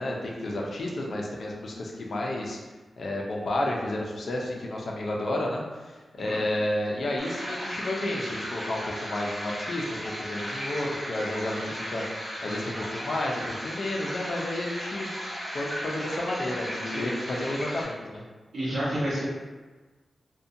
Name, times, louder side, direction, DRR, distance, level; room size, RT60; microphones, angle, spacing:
voice 1, 0.0-2.6 3.0-5.9 6.2-12.0 12.4-15.1 15.5-18.2, left 1 dB, 55° left, -2 dB, 0.4 m, -31 dB
sound 1, 7.2-17.8, equal, 10° right, 0.7 m, -36 dB
voice 2, 18.5-19.3, equal, 75° right, -9 dB, 0.8 m, -30 dB
2.6 x 2.2 x 2.5 m, 1.3 s
wide cardioid pair, 180°, 0 cm